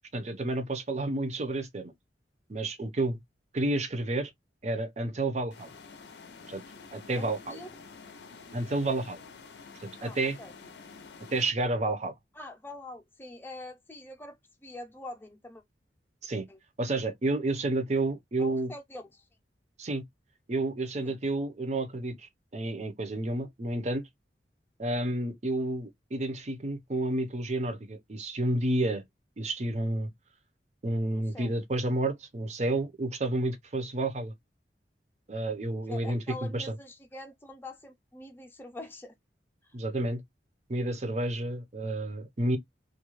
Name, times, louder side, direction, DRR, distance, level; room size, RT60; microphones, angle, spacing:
voice 1, 0.1-1.9 2.5-3.2 3.5-4.3 4.6-5.7 6.5-6.6 6.9-7.6 8.5-9.2 9.8-10.4 11.3-12.1 16.2-16.4 16.8-18.7 19.8-20.0 20.5-24.0 24.8-29.0 29.4-30.1 30.8-34.3 35.3-36.7 39.7-40.2 40.7-42.6, right 2 dB, 40° right, 0.6 m, -30 dB
sound 1, 5.5-11.5, left 4 dB, 70° left, 0.6 m, -49 dB
voice 2, 7.2-7.7 10.0-10.5 12.3-15.6 16.5-16.6 18.4-19.2 21.0-21.2 31.1-31.5 35.9-39.1 39.6-39.7, left 2 dB, 10° left, 0.6 m, -45 dB
2.4 x 2.1 x 2.9 m
head